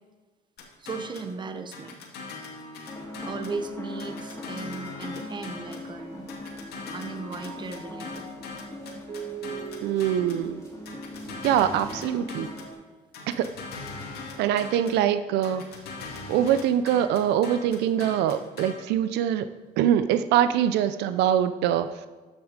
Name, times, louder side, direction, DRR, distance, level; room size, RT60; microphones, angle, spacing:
sound 1, 0.6-1.3 1.7-3.6 4.0-5.9 6.3-10.5 10.9-12.8 13.1-15.0 15.4-18.7, left 3 dB, 70° left, 2.0 m, -41 dB
voice 1, 0.8-2.0 3.2-6.3 6.9-8.3, right 4 dB, 25° right, 7 dB, 1.0 m, -36 dB
sound 2, 2.9-12.7, left 2 dB, 15° left, 2.9 m, -40 dB
Mallet percussion, 5.1-6.1 6.4-11.9, right 6 dB, 50° right, 1.5 m, -43 dB
voice 2, 9.8-10.6 11.4-12.5 13.3-13.5 14.4-15.6 16.3-19.5 19.8-21.9, right 10 dB, 85° right, 11 dB, 0.5 m, -23 dB
13.5 x 6.1 x 5.1 m, 1.3 s
cardioid pair, 110°, 17 cm